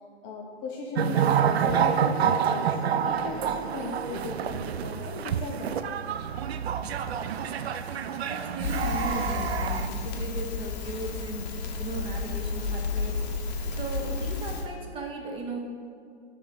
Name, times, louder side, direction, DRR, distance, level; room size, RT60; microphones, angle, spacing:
voice 1, 0.2-2.8 3.0-6.2, left 3 dB, 20° left, 0 dB, 0.5 m, -37 dB
sound 1, 1.0-9.9, right 8 dB, 70° right, 0.5 m, -28 dB
voice 2, 8.3-13.4 13.7-15.6, right 2 dB, 15° right, 0 dB, 0.9 m, -37 dB
Crackle, 8.6-14.7, left 4 dB, 40° left, 1.0 m, -32 dB
7.1 x 3.6 x 6.1 m, 2.2 s
figure-of-eight pair, 120°, 33 cm